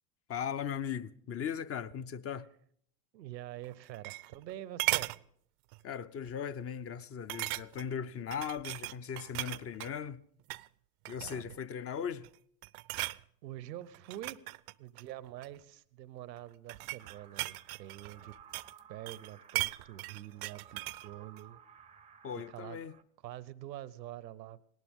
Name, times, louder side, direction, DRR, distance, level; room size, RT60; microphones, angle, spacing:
voice 1, 0.3-2.5 5.8-10.2 11.1-12.3 22.2-22.9, left 7 dB, 30° left, 0.7 m, -38 dB
voice 2, 3.1-5.1 11.1-11.6 13.0-14.4 14.8-18.3 18.9-21.6 22.5-22.8 23.2-24.6, right 13 dB, 90° right, 0.8 m, -46 dB
sound 1, 3.6-4.5 4.8-5.2 5.7-5.9 6.3-6.4 7.3-7.9 8.3-9.9 10.4-10.7 11.0-11.6 12.1-12.4 12.6-13.2 13.9-15.6 16.4-18.8 19.1-21.1 21.4-21.5, right 24 dB, 65° right, 0.6 m, -37 dB
sound 2, 17.0-23.0, right 8 dB, 15° right, 0.6 m, -57 dB
19.0 x 18.5 x 3.6 m
hypercardioid pair, 90°, 49 cm